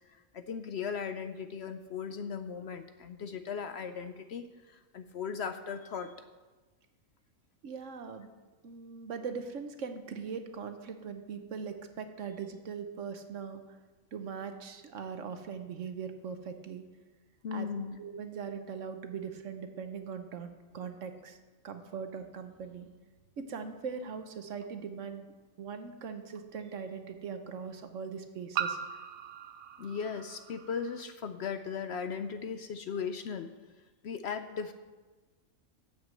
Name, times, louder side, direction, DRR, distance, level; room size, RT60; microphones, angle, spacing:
voice 1, 0.1-6.1 17.4-18.0 29.8-33.5 34.0-34.7, left 6 dB, 60° left, 8 dB, 0.8 m, -37 dB
voice 2, 7.6-8.3 8.6-13.6 14.1-16.8 17.5-17.7 18.0-21.4 21.6-22.9 23.4-25.3 25.6-28.8, right 6 dB, 65° right, 7 dB, 1.2 m, -40 dB
sound 1, 24.6-24.7 26.3-26.4 28.5-31.0, right 8 dB, 80° right, 1.0 m, -38 dB
9.1 x 7.4 x 7.6 m, 1.3 s
omnidirectional pair, 1.4 m